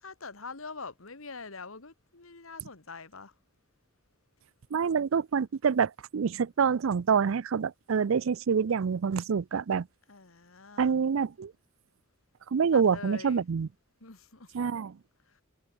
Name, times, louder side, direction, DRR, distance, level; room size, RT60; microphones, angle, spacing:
voice 1, 0.0-3.3 10.1-10.9 12.7-13.4 14.0-14.5 15.3-15.4, left 4 dB, 85° left, 2.2 m, -44 dB
voice 2, 4.7-9.9 10.8-11.5 12.5-13.7 14.5-14.9, right 6 dB, 70° right, 0.4 m, -26 dB
head